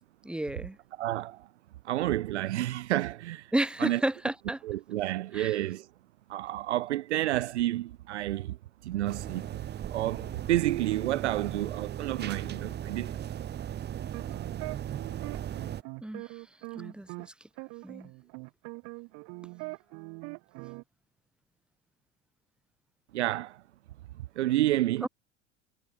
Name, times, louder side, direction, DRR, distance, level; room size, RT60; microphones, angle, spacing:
voice 1, 0.2-0.8 3.5-4.6 5.3-5.5 16.0-16.4 16.7-17.3 17.8-18.1 25.0-25.1, right 1 dB, ahead, 1.6 m, -32 dB
voice 2, 1.0-1.5 1.8-3.5 3.8-4.0 4.6-5.9 6.3-8.6 8.8-9.6 9.9-13.2 23.1-23.6 24.2-25.1, right 15 dB, 60° right, 0.8 m, -30 dB
sound 1, 9.1-15.8, right 10 dB, 25° right, 1.7 m, -37 dB
sound 2, 14.0-17.3 17.6-20.8, right 32 dB, 45° right, 1.5 m, -42 dB
figure-of-eight pair, 80°, 38 cm